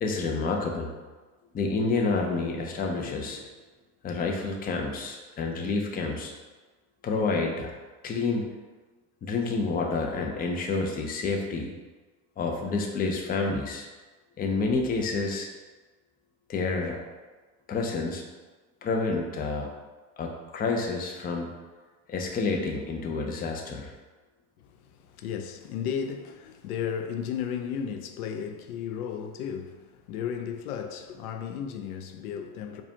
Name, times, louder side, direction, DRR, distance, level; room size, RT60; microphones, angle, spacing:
voice 1, 0.0-0.9 1.5-3.4 4.0-6.3 7.0-7.7 8.0-8.5 9.2-11.7 12.4-13.9 14.4-15.5 16.5-17.0 17.7-18.2 18.8-19.7 20.2-21.5 22.1-23.9, left 3 dB, 20° left, 0.5 m, -29 dB
voice 2, 24.6-32.8, left 8 dB, 80° left, 0.5 m, -34 dB
4.8 x 2.4 x 2.7 m
hypercardioid pair, 90°, 44 cm